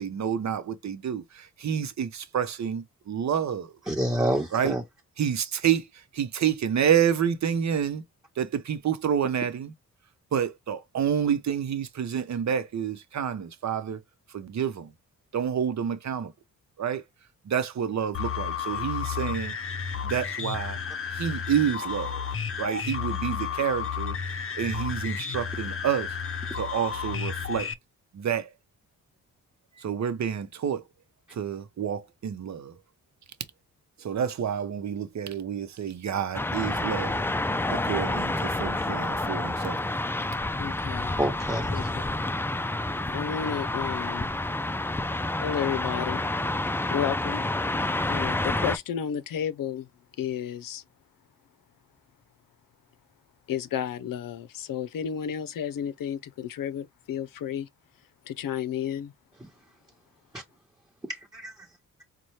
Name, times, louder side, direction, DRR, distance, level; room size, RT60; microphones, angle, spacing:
voice 1, 0.0-3.8 4.5-4.7 5.2-5.9 6.1-8.0 8.4-9.7 10.3-14.0 14.3-14.9 15.3-16.3 16.8-17.0 17.4-19.5 20.0-20.8 21.1-22.2 22.6-26.1 26.5-27.7 28.1-28.5 29.8-30.8 31.3-32.7 34.0-37.3 37.7-39.8, right 8 dB, 55° right, 0.8 m, -28 dB
voice 2, 3.9-4.8 41.2-41.9 60.3-60.4 61.1-61.5, right 1 dB, 10° right, 1.2 m, -28 dB
sound 1, 18.1-27.7, left 7 dB, 40° left, 0.7 m, -32 dB
sound 2, 36.3-48.8, left 2 dB, 5° left, 0.4 m, -29 dB
voice 3, 40.6-41.2 41.7-42.0 43.1-44.3 45.4-46.3 46.9-47.5 48.1-49.9 50.2-50.8 53.5-57.7 58.3-59.1, left 9 dB, 75° left, 0.6 m, -32 dB
4.1 x 2.3 x 3.1 m
cardioid pair, 80°, 34 cm